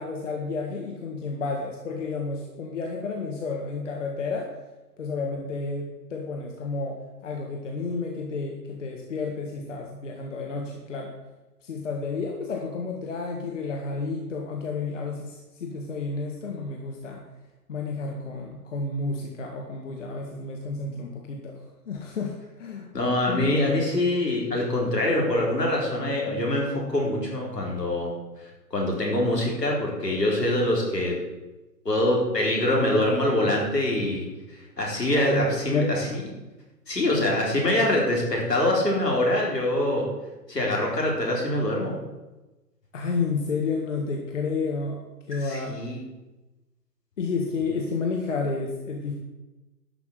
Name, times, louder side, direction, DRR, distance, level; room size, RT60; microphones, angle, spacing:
voice 1, 0.0-4.5 5.0-7.0 7.2-11.1 11.6-17.2 17.7-21.6 21.9-22.9 23.2-23.8 35.1-36.2 42.9-45.0 45.3-45.8 47.2-49.2, left 4 dB, 45° left, 1 dB, 1.7 m, -31 dB
voice 2, 22.9-28.1 28.4-31.2 31.8-34.3 34.8-36.2 36.9-40.1 40.5-41.9 45.4-46.0, left 1 dB, 75° left, -1 dB, 4.4 m, -24 dB
12.0 x 6.0 x 7.7 m, 1.1 s
figure-of-eight pair, 135°, 49 cm